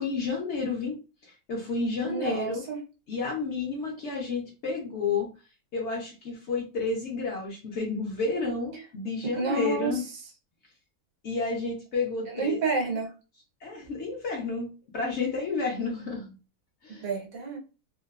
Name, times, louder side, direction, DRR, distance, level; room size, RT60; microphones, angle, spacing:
voice 1, 0.0-2.6 3.1-5.3 5.7-10.0 11.2-12.6 13.6-16.4 16.8-17.0, left 4 dB, 60° left, 0.8 m, -31 dB
voice 2, 2.1-2.8 9.2-10.0 12.3-13.1 16.9-17.6, right 3 dB, 65° right, 1.1 m, -29 dB
3.0 x 2.0 x 2.3 m
omnidirectional pair, 1.6 m